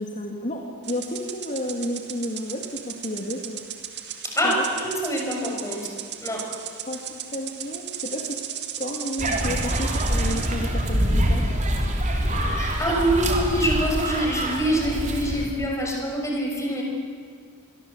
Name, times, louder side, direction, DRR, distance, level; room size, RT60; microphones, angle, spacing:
voice 1, 0.0-3.6 4.4-4.7 6.9-8.4 8.8-11.4, left 1 dB, 35° left, 0 dB, 2.4 m, -31 dB
sound 1, 0.8-10.5, right 9 dB, 50° right, 2.2 m, -36 dB
voice 2, 4.2-5.9 6.2-6.5 12.5-16.8, equal, 15° left, -1 dB, 6.3 m, -25 dB
sound 2, 9.2-15.5, right 1 dB, 35° right, 3.3 m, -25 dB
26.5 x 22.5 x 8.1 m, 2.2 s
head